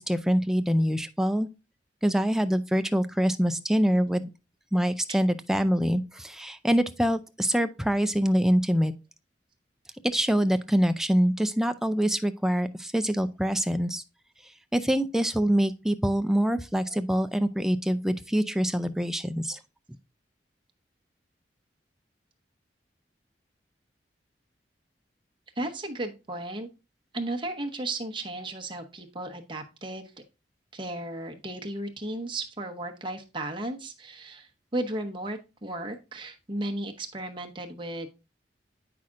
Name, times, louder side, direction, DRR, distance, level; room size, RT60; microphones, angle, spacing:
voice 1, 0.0-1.5 2.0-4.3 4.7-8.9 10.0-14.0 14.7-19.6, equal, 5° right, 0.4 m, -25 dB
voice 2, 25.6-26.7 27.1-30.1 30.7-38.1, right 1 dB, 30° right, 1.0 m, -35 dB
8.5 x 5.7 x 2.5 m
head